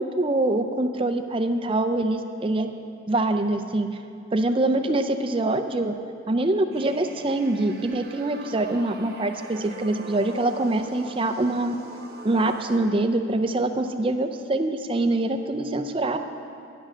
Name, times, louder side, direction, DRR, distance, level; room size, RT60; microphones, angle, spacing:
voice 1, 0.0-2.7 3.1-3.9 4.3-5.9 6.3-11.7 12.2-16.2, right 2 dB, 25° right, 8 dB, 0.5 m, -24 dB
sound 1, 6.7-12.8, right 2 dB, 50° right, 0.9 m, -43 dB
10.0 x 9.1 x 6.2 m, 2.5 s
head